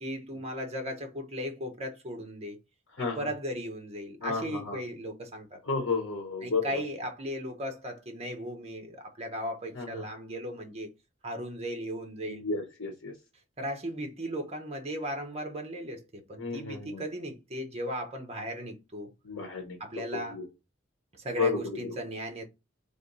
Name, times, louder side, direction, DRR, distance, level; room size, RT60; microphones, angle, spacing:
voice 1, 0.0-2.6 3.0-5.6 6.4-10.9 11.2-12.4 13.6-19.1 19.8-20.4 21.1-22.4, equal, 35° right, 1.0 m, -37 dB
voice 2, 3.0-3.3 4.2-4.8 5.6-6.6 9.7-10.0 12.2-13.1 16.4-17.0 19.2-20.5 21.4-21.6, left 4 dB, 80° left, 1.0 m, -32 dB
3.5 x 2.6 x 3.9 m
head